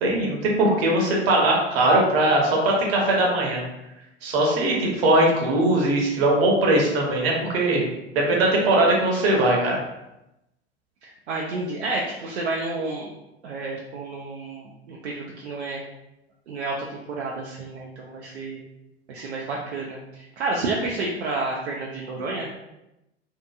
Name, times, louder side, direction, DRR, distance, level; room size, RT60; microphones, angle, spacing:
voice 1, 0.0-3.6 4.2-7.8 8.1-9.8, right 1 dB, 60° right, -1 dB, 0.9 m, -20 dB
voice 2, 11.0-13.1 13.4-15.8 16.5-18.6 19.1-22.5, right 3 dB, 80° right, -3 dB, 0.5 m, -30 dB
2.7 x 2.5 x 2.3 m, 0.90 s
figure-of-eight pair, 80°, 33 cm